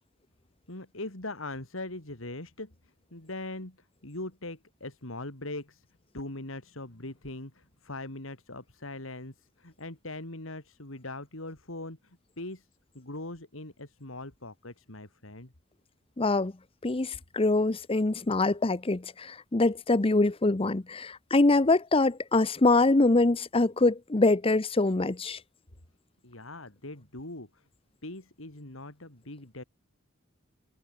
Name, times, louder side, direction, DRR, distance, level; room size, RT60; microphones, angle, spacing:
voice 1, 0.7-2.7 3.1-3.8 4.0-5.8 6.1-12.7 12.9-15.5 26.2-27.6 28.0-29.6, left 2 dB, 75° left, 3.7 m, -41 dB
voice 2, 16.2-16.5 16.8-25.4, left 2 dB, 25° left, 0.7 m, -24 dB
open air
head